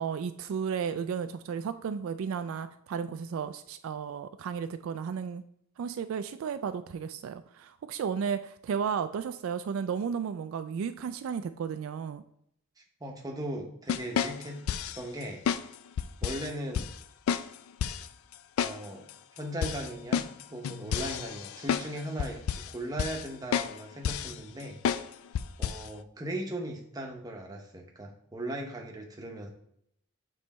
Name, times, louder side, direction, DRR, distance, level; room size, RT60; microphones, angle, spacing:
voice 1, 0.0-5.4 5.8-12.2, right 7 dB, 70° right, 10 dB, 0.3 m, -33 dB
voice 2, 12.8-14.6 14.9-15.4 16.2-16.9 18.6-19.1 19.3-24.8 25.6-29.5, right 1 dB, 15° right, 1 dB, 0.8 m, -38 dB
sound 1, 13.9-15.0 15.5-15.6 16.0-16.5 16.7-16.9 17.3-17.5 17.8-18.1 18.6-18.8 19.1-19.2 19.6-21.9 22.2-22.7 23.0-23.3 23.5-23.7 24.0-24.3 24.8-25.1 25.3-25.9, left 7 dB, 75° left, 0.3 m, -30 dB
7.1 x 3.2 x 4.1 m, 0.73 s
head